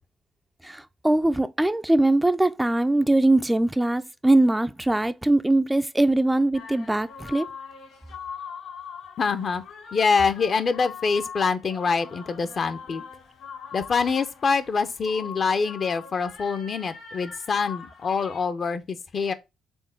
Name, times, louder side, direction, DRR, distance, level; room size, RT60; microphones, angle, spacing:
voice 1, 0.6-7.5, right 2 dB, 10° right, 0.4 m, -21 dB
sound 1, 6.5-18.4, left 6 dB, 70° left, 2.1 m, -42 dB
voice 2, 9.2-9.6 9.9-13.0 13.7-19.3, left 5 dB, 50° left, 0.6 m, -25 dB
4.4 x 3.6 x 3.3 m
hypercardioid pair, 55°, 0 cm